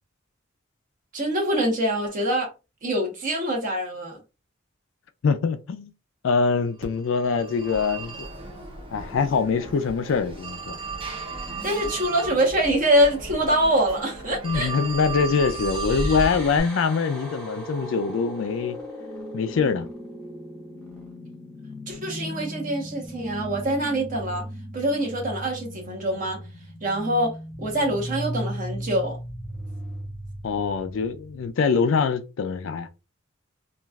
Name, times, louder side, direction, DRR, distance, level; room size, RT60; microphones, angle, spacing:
voice 1, 1.1-2.5 2.8-4.2 11.6-14.7 21.9-24.4 24.7-26.4 26.8-27.3 27.6-29.2, right 1 dB, 40° right, 1.0 m, -24 dB
voice 2, 5.2-5.9 6.2-8.1 8.9-10.8 14.4-18.8 19.3-19.9 30.4-32.9, left 5 dB, 65° left, 0.4 m, -24 dB
Telephone, 6.8-16.6, right 3 dB, 25° right, 0.7 m, -34 dB
sound 1, 15.5-31.5, equal, 5° left, 0.9 m, -37 dB
3.1 x 2.4 x 2.3 m
head